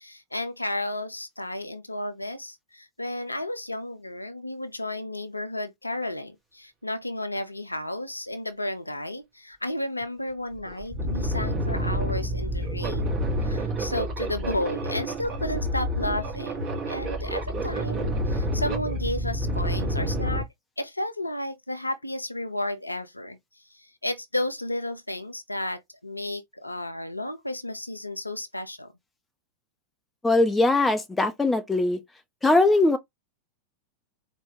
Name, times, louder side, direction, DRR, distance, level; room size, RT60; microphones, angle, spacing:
voice 1, 0.0-13.1 13.4-20.5 20.8-23.4 23.7-28.9, left 1 dB, 85° left, 0.5 m, -32 dB
sound 1, 10.0-10.1 10.5-20.4, equal, 35° right, 2.4 m, -28 dB
voice 2, 30.2-32.0 32.4-33.0, left 2 dB, 10° left, 0.8 m, -21 dB
4.3 x 2.1 x 3.5 m
figure-of-eight pair, 90°, 0 cm